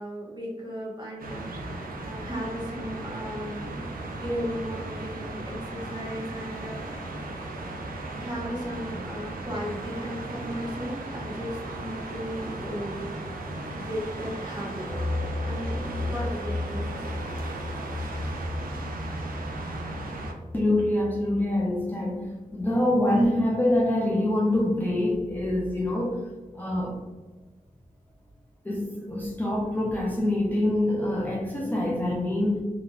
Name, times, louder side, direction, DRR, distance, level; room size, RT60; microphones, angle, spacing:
voice 1, 0.0-3.8 4.2-7.1 7.5-7.6 8.2-13.3 13.8-14.9 15.4-17.0, equal, 30° right, -5 dB, 1.2 m, -36 dB
sound 1, 1.2-20.3, right 2 dB, 80° right, 0.5 m, -36 dB
sound 2, 14.9-21.4, left 2 dB, 35° left, 0.8 m, -34 dB
voice 2, 20.5-22.2 22.5-26.2 26.6-27.0 28.7-32.6, left 1 dB, 10° left, -3 dB, 0.5 m, -25 dB
3.4 x 2.9 x 2.3 m, 1.3 s
wide cardioid pair, 100°, 15 cm